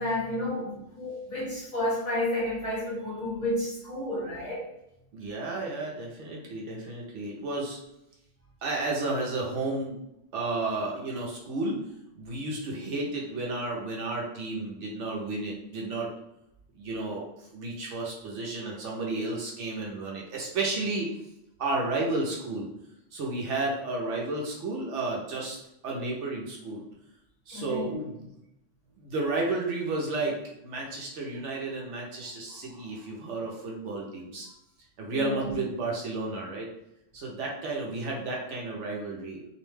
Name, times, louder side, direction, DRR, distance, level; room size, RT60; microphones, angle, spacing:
voice 1, 0.0-4.7 27.5-27.9 32.5-33.0 35.1-35.6, left 1 dB, 35° left, -8 dB, 1.2 m, -31 dB
voice 2, 5.1-7.8 8.6-10.0 10.3-11.8 12.2-16.1 16.7-21.1 21.6-22.7 23.1-25.6 25.8-26.8 27.5-28.3 29.0-30.3 30.6-34.5 35.0-36.7 37.1-39.4, right 2 dB, 70° right, -1 dB, 0.9 m, -32 dB
2.7 x 2.1 x 3.1 m, 0.82 s
omnidirectional pair, 1.3 m